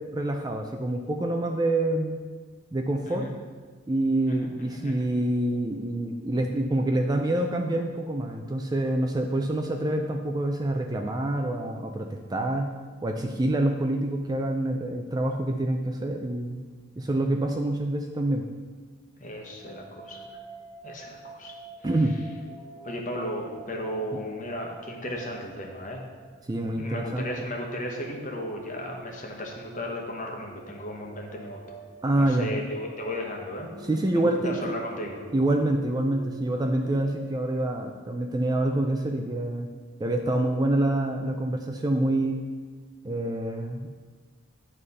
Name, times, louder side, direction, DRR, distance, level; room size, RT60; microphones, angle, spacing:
voice 1, 0.0-2.2 2.7-3.3 3.9-12.7 13.0-16.6 17.0-18.4 21.8-22.1 26.5-27.3 32.0-32.5 33.8-34.7 35.3-39.7 40.0-42.4 43.0-43.9, right 1 dB, 20° right, 3 dB, 0.4 m, -26 dB
voice 2, 3.0-3.3 4.3-5.1 19.2-20.2 20.8-21.5 22.8-26.0 26.8-31.6 32.1-33.7 34.1-35.3, left 1 dB, 40° left, 0 dB, 1.1 m, -35 dB
sound 1, 19.6-37.1, right 3 dB, 55° right, 1.9 m, -47 dB
9.8 x 3.3 x 5.4 m, 1.5 s
head